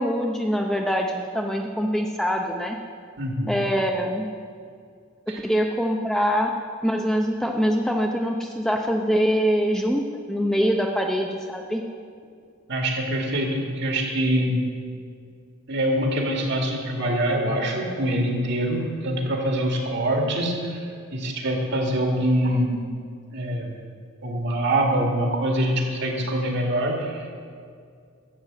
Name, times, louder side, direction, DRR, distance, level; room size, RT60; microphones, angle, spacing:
voice 1, 0.0-2.8 3.5-4.3 5.4-6.5 6.8-11.8, equal, ahead, 1 dB, 0.6 m, -24 dB
voice 2, 3.2-3.6 5.3-5.4 12.7-14.6 15.7-22.8 23.3-23.8 24.2-27.5, right 1 dB, 55° right, 1 dB, 2.2 m, -24 dB
12.0 x 8.0 x 7.6 m, 2.2 s
head